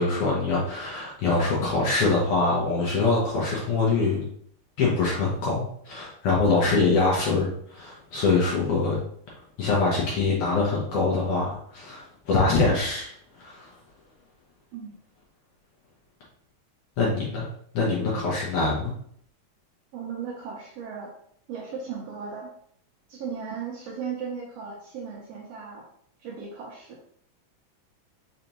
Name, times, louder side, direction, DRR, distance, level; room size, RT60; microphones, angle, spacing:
voice 1, 0.0-4.2 4.8-9.0 9.6-13.1 13.4-13.7 17.0-17.5 17.7-18.9, left 3 dB, 65° left, -5 dB, 1.6 m, -24 dB
voice 2, 19.9-21.1 21.5-22.5 23.1-25.9 26.2-27.0, right 6 dB, 70° right, -2 dB, 1.7 m, -36 dB
5.3 x 3.3 x 2.9 m, 0.64 s
omnidirectional pair, 3.5 m